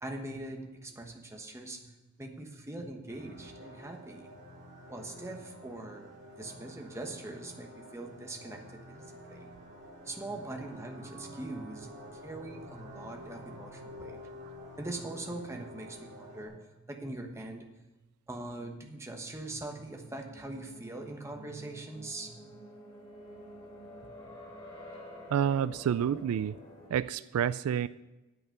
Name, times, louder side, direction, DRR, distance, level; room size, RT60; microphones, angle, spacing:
voice 1, 0.0-4.3 4.9-6.1 6.4-9.5 10.0-14.2 14.8-17.9 18.3-22.6, right 2 dB, 15° right, 3 dB, 1.2 m, -42 dB
sound 1, 3.1-16.5, equal, 55° right, 2.6 m, -49 dB
sound 2, 19.6-26.9, left 1 dB, 20° left, 2.8 m, -50 dB
voice 2, 25.3-26.6 26.9-27.9, right 9 dB, 75° right, 16 dB, 0.3 m, -29 dB
9.2 x 7.9 x 6.7 m, 1.1 s
head